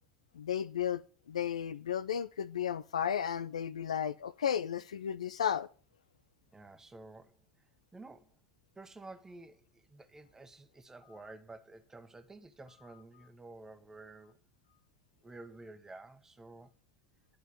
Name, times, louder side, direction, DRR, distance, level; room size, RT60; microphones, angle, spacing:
voice 1, 0.3-1.0 1.3-5.7 11.1-11.3 12.9-13.0, left 9 dB, 70° left, 0.5 m, -34 dB
voice 2, 6.5-7.7 7.9-8.4 8.7-14.4 15.2-16.7, right 2 dB, 15° right, 1.3 m, -51 dB
11.0 x 5.4 x 7.8 m
figure-of-eight pair, 70°, 4 cm